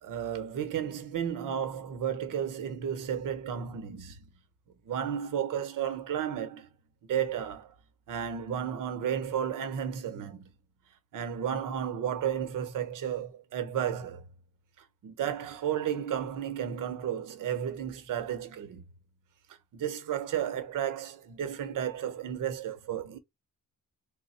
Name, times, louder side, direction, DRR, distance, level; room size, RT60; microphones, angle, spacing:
voice 1, 0.0-4.2 4.8-6.7 7.1-7.7 8.1-10.5 11.1-14.2 15.0-18.8 19.7-23.2, right 9 dB, 90° right, 0.9 m, -33 dB
3.2 x 2.1 x 4.1 m
wide cardioid pair, 160°, 31 cm